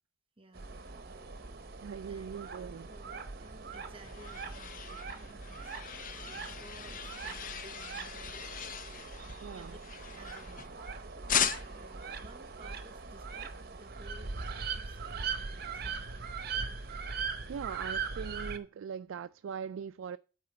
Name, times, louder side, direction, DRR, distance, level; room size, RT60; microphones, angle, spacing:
voice 1, 0.4-0.8 2.1-8.5 9.5-9.8 10.1-10.8 11.3-16.3, right 2 dB, 30° right, 1.2 m, -57 dB
sound 1, 0.5-18.6, right 5 dB, 50° right, 0.8 m, -41 dB
voice 2, 1.8-2.9 9.4-9.8 17.5-20.2, right 7 dB, 80° right, 0.3 m, -41 dB
sound 2, 2.0-7.0, equal, 15° left, 1.5 m, -60 dB
sound 3, 3.6-10.9 11.3-11.9, left 8 dB, 45° left, 0.6 m, -38 dB
8.9 x 4.2 x 6.6 m
head